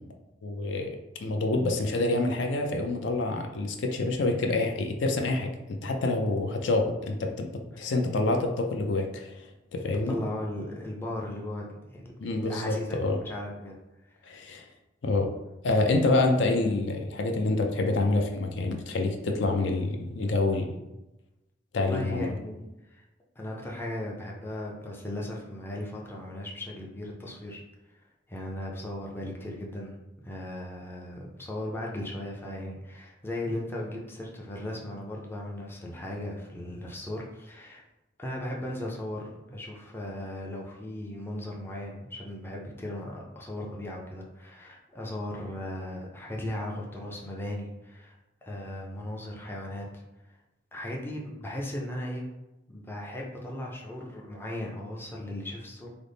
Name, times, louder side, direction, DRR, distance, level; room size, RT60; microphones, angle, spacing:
voice 1, 0.4-9.4 9.7-10.2 12.2-13.2 14.3-14.7 15.0-15.3 15.6-20.8 21.7-22.4, left 2 dB, 70° left, 3 dB, 0.4 m, -27 dB
voice 2, 9.9-12.0 12.4-13.8 21.7-22.6 22.9-23.0 23.4-27.6 28.3-30.0 30.2-37.8 38.2-50.0 50.7-52.3 52.7-55.9, left 1 dB, 10° left, -2 dB, 0.5 m, -37 dB
3.4 x 2.0 x 3.8 m, 0.98 s
head